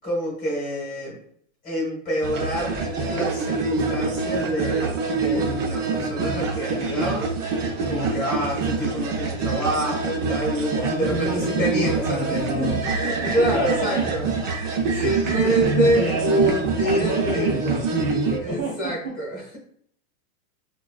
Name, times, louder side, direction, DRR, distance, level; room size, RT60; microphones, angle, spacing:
voice 1, 0.0-1.2 1.6-7.4 7.9-14.3 14.9-17.8 18.4-19.6, right 1 dB, 20° left, -3 dB, 0.9 m, -27 dB
sound 1, 2.2-18.4, right 4 dB, 60° right, 0.7 m, -25 dB
voice 2, 7.9-8.3 10.7-12.8 13.2-14.1 14.9-16.6 16.8-19.1, right 1 dB, 25° right, -9 dB, 0.4 m, -28 dB
5.1 x 2.2 x 2.3 m, 0.64 s
supercardioid pair, 180°, 44 cm